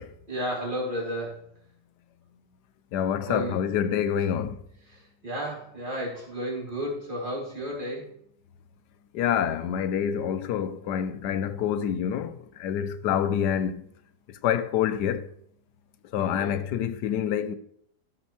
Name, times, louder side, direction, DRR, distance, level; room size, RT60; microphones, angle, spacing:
voice 1, 0.3-1.5 3.2-3.6 4.9-8.1 16.2-16.6, equal, 30° right, 2.9 m, -33 dB
voice 2, 2.9-4.6 9.1-13.9 14.3-15.3 16.1-17.6, left 9 dB, 85° left, 1.2 m, -27 dB
13.5 x 6.2 x 3.1 m
omnidirectional pair, 1.8 m